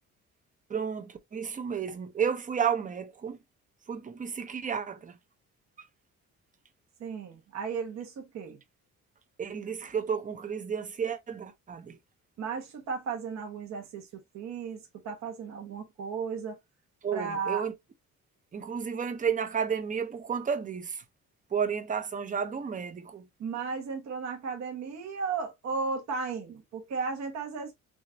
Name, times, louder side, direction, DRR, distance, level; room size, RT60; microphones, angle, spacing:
voice 1, 0.7-3.4 3.9-5.2 9.4-12.0 17.0-17.7 18.5-21.0 21.5-23.2, right 7 dB, 25° right, 0.7 m, -32 dB
voice 2, 7.0-8.6 12.4-14.1 14.3-16.6 17.1-17.6 23.4-27.7, right 5 dB, 60° right, 1.2 m, -35 dB
6.2 x 2.5 x 2.9 m
cardioid pair, 160°, 31 cm